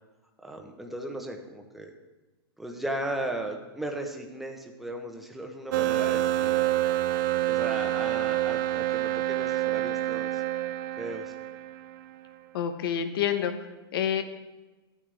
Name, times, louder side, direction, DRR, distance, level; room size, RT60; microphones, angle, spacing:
voice 1, 0.4-1.9 2.6-6.8 7.4-10.4 11.0-11.3, right 1 dB, ahead, 2 dB, 1.0 m, -36 dB
sound 1, 5.7-12.1, right 15 dB, 55° right, 0.5 m, -27 dB
voice 2, 12.5-14.2, left 9 dB, 65° left, 9 dB, 1.0 m, -28 dB
12.5 x 8.8 x 3.4 m, 1.2 s
hypercardioid pair, 135°, 13 cm